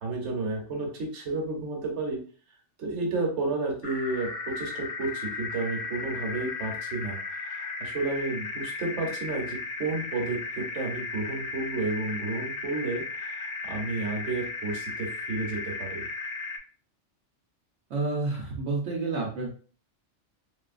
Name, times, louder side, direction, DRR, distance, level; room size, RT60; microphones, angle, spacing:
voice 1, 0.0-2.2 2.8-16.1, right 3 dB, 70° right, 0 dB, 1.2 m, -32 dB
sound 1, 3.8-16.6, left 4 dB, 50° left, 0.6 m, -35 dB
voice 2, 17.9-19.5, right 3 dB, 90° right, -1 dB, 1.1 m, -29 dB
3.0 x 2.8 x 2.4 m, 0.42 s
omnidirectional pair, 1.2 m